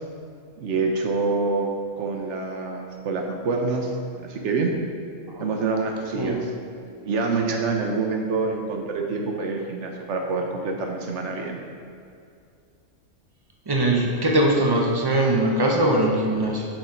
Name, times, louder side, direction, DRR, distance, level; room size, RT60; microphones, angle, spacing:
voice 1, 0.6-3.9 4.3-4.7 5.4-6.4 7.0-11.6, right 4 dB, 65° right, 2 dB, 1.1 m, -26 dB
voice 2, 13.7-16.6, right 1 dB, 25° right, -1 dB, 0.5 m, -21 dB
6.1 x 5.1 x 4.3 m, 2.4 s
omnidirectional pair, 1.4 m